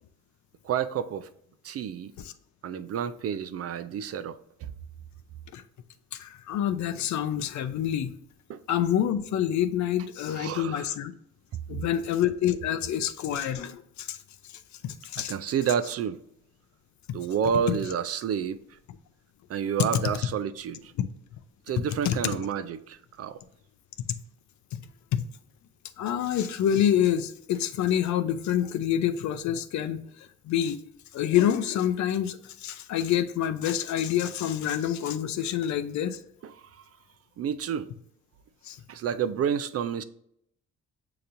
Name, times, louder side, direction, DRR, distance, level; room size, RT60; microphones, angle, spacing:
voice 1, 0.6-1.3 1.6-2.1 2.6-4.7 8.5-8.6 10.3-11.0 15.3-16.2 17.1-18.6 19.5-20.9 21.7-23.4 36.4-36.5 37.4-37.9 38.9-40.0, right 8 dB, 55° right, 0.4 m, -29 dB
voice 2, 6.1-8.1 8.7-11.1 11.7-14.2 14.8-15.3 17.1-17.2 21.0-21.1 22.0-22.2 24.7-24.8 25.1-25.2 26.0-30.8 31.1-36.2 38.6-38.8, left 10 dB, 70° left, 0.5 m, -27 dB
6.6 x 2.9 x 2.6 m
cardioid pair, 90°, 30 cm